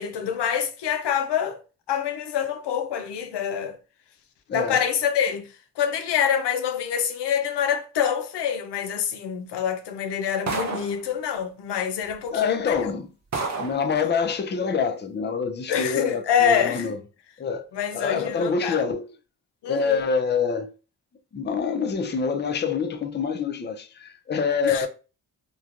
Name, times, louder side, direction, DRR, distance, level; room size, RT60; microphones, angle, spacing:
voice 1, 0.0-1.6 1.9-3.8 4.5-5.5 5.8-12.9 15.7-16.9 17.7-18.8 19.6-20.0 24.6-24.9, left 8 dB, 90° left, 0.5 m, -26 dB
voice 2, 4.5-4.8 12.3-13.1 13.6-17.0 17.4-17.7 17.9-19.1 19.7-20.7 21.3-24.9, left 5 dB, 30° left, 0.4 m, -26 dB
sound 1, 10.5-11.0 12.1-12.2 12.7-12.8 13.3-13.9, right 4 dB, 45° right, 0.7 m, -29 dB
3.1 x 2.1 x 2.4 m
cardioid pair, 55°, 40 cm